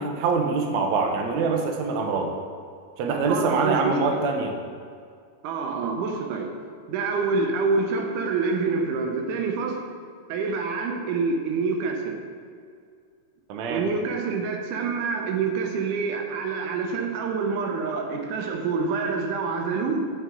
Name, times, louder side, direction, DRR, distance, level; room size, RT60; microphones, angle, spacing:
voice 1, 0.0-2.3 3.0-4.6 13.5-13.9, right 4 dB, 70° right, 2 dB, 1.9 m, -24 dB
voice 2, 3.3-4.2 5.4-6.5 6.9-9.9 10.3-12.2 13.7-20.1, right 4 dB, 90° right, 3 dB, 2.2 m, -27 dB
8.3 x 6.2 x 3.7 m, 2.2 s
omnidirectional pair, 3.5 m